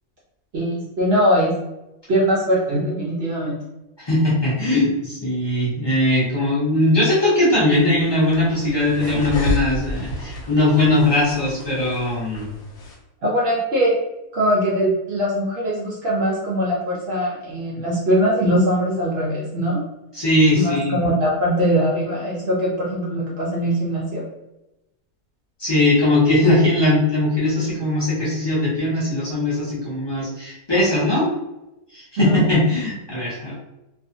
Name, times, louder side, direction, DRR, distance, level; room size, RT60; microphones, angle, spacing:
voice 1, 0.5-1.5 2.1-3.6 13.2-13.9 14.3-19.8 20.5-24.2 32.2-32.4, equal, 65° right, -4 dB, 0.6 m, -21 dB
voice 2, 4.0-12.5 20.1-21.0 25.6-31.3 31.9-33.5, left 1 dB, 25° left, -8 dB, 0.5 m, -19 dB
sound 1, 7.7-13.0, equal, 75° left, 1.0 m, -31 dB
2.5 x 2.3 x 2.6 m, 0.95 s
omnidirectional pair, 1.6 m